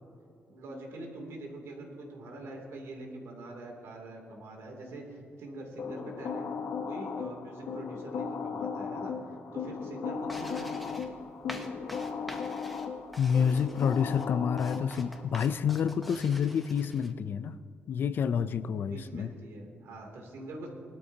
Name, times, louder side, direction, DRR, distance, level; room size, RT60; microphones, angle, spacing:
voice 1, 0.5-6.5 6.9-11.0 18.9-20.7, right 2 dB, 85° right, 0 dB, 2.7 m, -44 dB
sound 1, 5.8-15.2, left 6 dB, 90° left, 0.9 m, -36 dB
sound 2, 10.2-17.1, equal, ahead, 0.8 m, -47 dB
voice 2, 13.2-17.6 17.9-19.3, left 7 dB, 50° left, 14 dB, 0.4 m, -28 dB
20.0 x 12.5 x 2.8 m, 2.6 s
wide cardioid pair, 180°, 5 cm